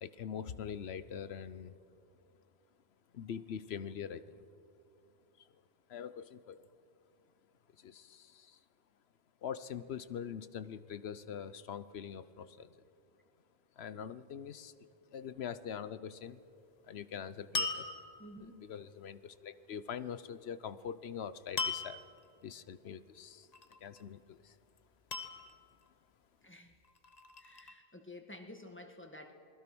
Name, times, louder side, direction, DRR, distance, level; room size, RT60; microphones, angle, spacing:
voice 1, 0.0-1.7 3.1-4.4 5.4-5.5 5.9-6.7 7.8-8.6 9.4-12.8 13.8-14.7 15.1-16.4 16.8-17.9 18.4-22.0 22.4-23.5 23.8-24.6, left 8 dB, 80° left, 15 dB, 1.0 m, -43 dB
sound 1, 17.5-18.4 21.6-22.2 23.5-24.0 25.1-25.9 26.8-27.7, left 3 dB, 40° left, 1.3 m, -38 dB
voice 2, 18.2-18.6 26.4-26.7 27.4-29.3, left 1 dB, 10° left, 4 dB, 1.7 m, -51 dB
28.0 x 20.5 x 6.1 m, 2.6 s
omnidirectional pair, 1.0 m